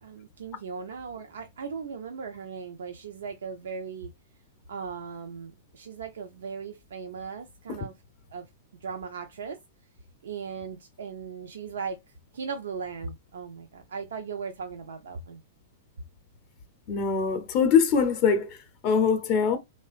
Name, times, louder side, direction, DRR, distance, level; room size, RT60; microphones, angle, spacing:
voice 1, 0.0-4.1 4.7-7.9 8.3-8.5 8.8-9.6 10.2-12.0 12.3-15.4, right 5 dB, 75° right, 0.4 m, -38 dB
voice 2, 16.9-18.6 18.8-19.6, left 6 dB, 45° left, 0.6 m, -22 dB
2.9 x 2.1 x 2.4 m
hypercardioid pair, 110°, 0 cm